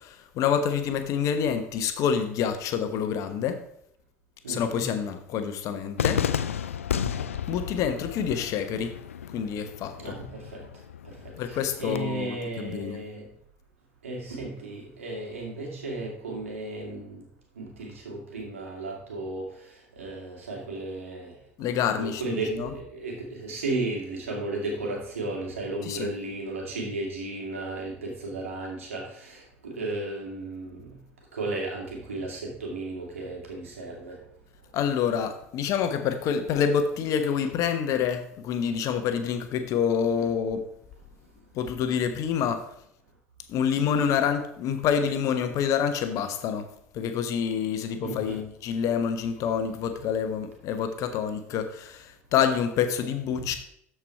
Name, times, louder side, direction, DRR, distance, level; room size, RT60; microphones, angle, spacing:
voice 1, 0.0-3.6 4.5-6.3 7.5-9.0 9.3-10.1 11.4-13.0 21.6-22.7 25.8-26.1 34.7-40.7 41.5-42.7 43.5-53.5, left 7 dB, 50° left, 1.1 m, -27 dB
voice 2, 4.4-4.9 6.9-7.1 10.0-10.6 11.0-13.2 14.0-17.2 17.5-19.7 20.0-21.3 22.0-31.0 31.3-34.2 48.0-48.4 53.4-53.5, right 2 dB, 75° right, 2.4 m, -34 dB
Cheering / Fireworks, 6.0-12.0, left 9 dB, 75° left, 0.4 m, -32 dB
13.0 x 4.8 x 4.5 m
figure-of-eight pair, 65°, 7 cm